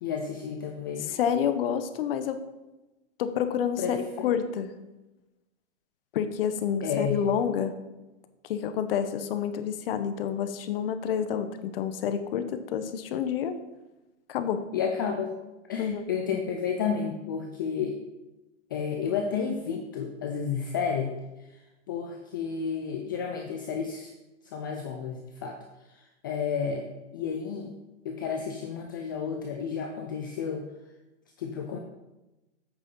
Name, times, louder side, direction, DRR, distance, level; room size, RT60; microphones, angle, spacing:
voice 1, 0.0-1.1 3.8-4.4 6.8-7.2 14.7-15.3 15.7-18.0 18.7-21.2 21.9-24.1 24.5-25.6 25.9-27.7 28.0-30.6 31.4-31.8, left 6 dB, 20° left, 2 dB, 0.3 m, -31 dB
voice 2, 1.0-2.4 3.2-4.7 6.1-7.7 8.5-13.6 14.3-14.7 15.8-16.0, left 8 dB, 50° left, 9 dB, 0.9 m, -28 dB
8.4 x 6.2 x 5.3 m, 1.0 s
hypercardioid pair, 155°, 36 cm